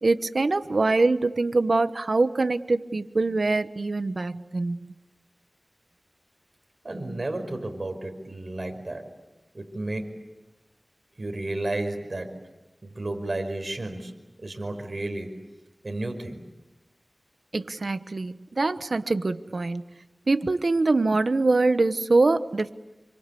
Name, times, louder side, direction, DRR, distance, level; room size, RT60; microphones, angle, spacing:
voice 1, 0.0-4.9 17.5-19.8 20.3-22.7, right 3 dB, 75° right, 11 dB, 1.1 m, -24 dB
voice 2, 6.8-9.1 9.5-10.2 11.2-12.4 12.8-14.1 14.4-15.3 15.8-16.4, right 2 dB, 50° right, 5 dB, 5.2 m, -32 dB
28.0 x 25.0 x 8.4 m, 1.1 s
wide cardioid pair, 55°, 0 cm